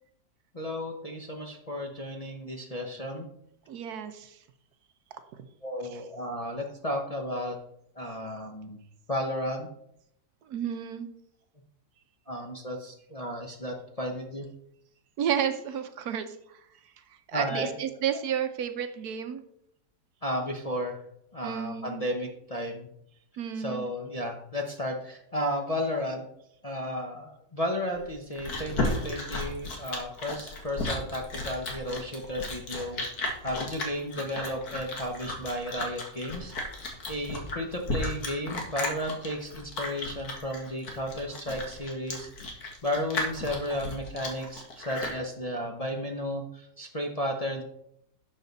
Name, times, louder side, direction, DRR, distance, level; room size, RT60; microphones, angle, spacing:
voice 1, 0.5-3.3 5.6-7.6 8.0-8.8 9.1-9.7 12.3-14.5 17.3-17.7 20.2-21.0 21.3-22.9 23.6-26.2 26.6-36.5 37.1-47.6, equal, 30° left, 1 dB, 0.8 m, -33 dB
voice 2, 3.7-4.4 5.9-6.0 10.5-11.1 15.2-16.6 17.3-19.4 21.4-22.0 23.4-23.9, right 8 dB, 70° right, 9 dB, 1.2 m, -31 dB
Chewing mastication, 28.0-45.2, left 2 dB, 65° left, 2.2 m, -34 dB
11.5 x 6.7 x 4.0 m, 0.75 s
omnidirectional pair, 1.8 m